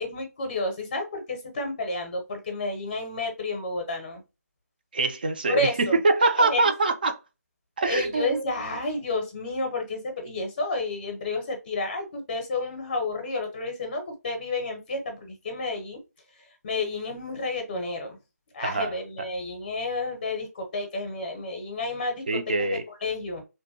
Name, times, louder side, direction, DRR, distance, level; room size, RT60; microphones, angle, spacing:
voice 1, 0.0-4.2 5.5-6.0 6.2-6.7 7.8-16.0 16.4-18.2 18.5-23.4, left 2 dB, 30° left, 0.6 m, -31 dB
voice 2, 4.9-7.2 7.8-8.4 18.6-18.9 22.3-22.8, right 3 dB, 35° right, 0.3 m, -24 dB
2.6 x 2.2 x 2.6 m
figure-of-eight pair, 155°, 9 cm